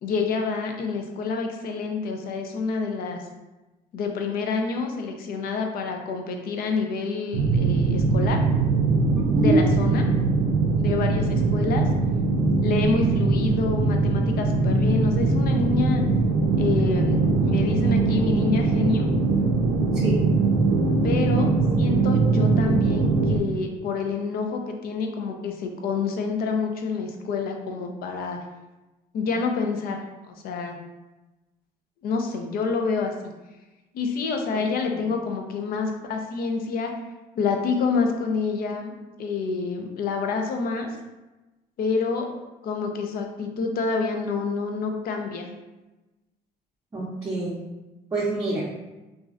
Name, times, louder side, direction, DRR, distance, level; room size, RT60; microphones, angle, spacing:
voice 1, 0.0-3.2 3.9-8.4 9.4-10.0 10.8-11.9 12.6-16.0 16.6-19.1 21.0-21.5 21.8-28.4 29.1-30.8 32.0-33.1 33.9-36.9 37.4-38.9 39.2-40.9 41.8-42.3 42.6-45.5, left 4 dB, 60° left, 3 dB, 0.5 m, -27 dB
sound 1, 7.3-23.4, right 3 dB, 90° right, 0.4 m, -21 dB
voice 2, 9.1-9.6 20.0-20.2 34.5-34.6 34.9-35.0 46.9-47.5 48.1-48.7, right 2 dB, 20° right, -7 dB, 0.6 m, -25 dB
3.0 x 2.5 x 2.4 m, 1.1 s
cardioid pair, 110°, 17 cm